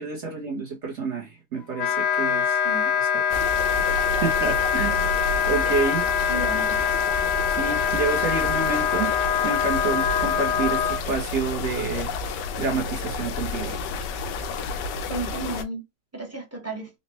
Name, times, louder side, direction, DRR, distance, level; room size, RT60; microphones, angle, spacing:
voice 1, 0.0-2.6 3.0-3.2 3.9-5.1 5.5-6.1 7.6-9.1 9.4-12.1 12.6-13.8, right 4 dB, 55° right, 0.8 m, -28 dB
Wind instrument woodwind instrument, 1.7-11.0, left 8 dB, 65° left, 0.6 m, -24 dB
sound 1, 3.3-15.6, left 3 dB, 85° left, 1.2 m, -31 dB
voice 2, 6.3-6.8 15.1-15.8 16.1-16.9, right 3 dB, 15° right, 0.5 m, -33 dB
4.0 x 2.1 x 2.8 m
omnidirectional pair, 1.8 m